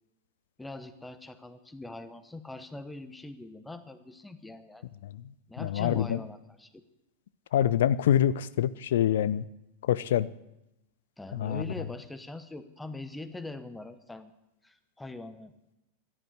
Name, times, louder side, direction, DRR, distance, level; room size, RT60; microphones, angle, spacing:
voice 1, 0.6-4.8 5.5-6.8 11.2-14.3 14.6-15.5, left 2 dB, 5° left, 12 dB, 1.1 m, -42 dB
voice 2, 5.6-6.2 7.5-9.5 9.8-10.3 11.3-11.6, left 10 dB, 60° left, 19 dB, 0.5 m, -25 dB
14.5 x 11.0 x 8.2 m, 0.91 s
figure-of-eight pair, 90°, 0 cm